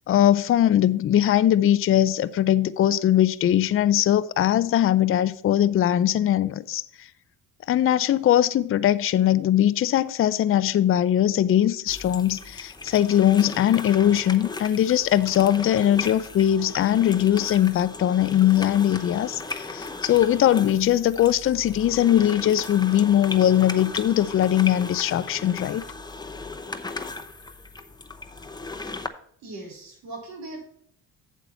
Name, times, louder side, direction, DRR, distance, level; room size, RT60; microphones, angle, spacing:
voice 1, 0.1-7.1 7.7-25.9, left 11 dB, 40° left, 0.5 m, -21 dB
sound 1, 11.9-29.1, left 3 dB, 10° left, 0.8 m, -36 dB
voice 2, 29.4-30.6, right 2 dB, 80° right, 3.7 m, -39 dB
8.2 x 7.2 x 4.3 m
supercardioid pair, 85°, 35 cm